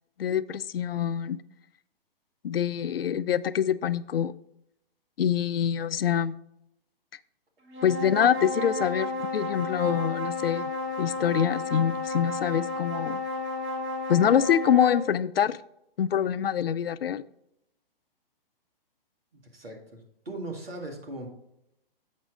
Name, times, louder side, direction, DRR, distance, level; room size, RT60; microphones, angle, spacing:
voice 1, 0.2-1.4 2.4-4.3 5.2-6.4 7.8-10.6 11.0-13.2 14.1-15.6 16.0-17.2, left 9 dB, 80° left, 0.5 m, -25 dB
sound 1, 7.7-15.1, left 2 dB, 30° right, 1.9 m, -32 dB
voice 2, 19.3-20.0 20.3-21.3, right 2 dB, 85° right, 2.0 m, -38 dB
7.3 x 6.1 x 3.8 m
figure-of-eight pair, 130°, 29 cm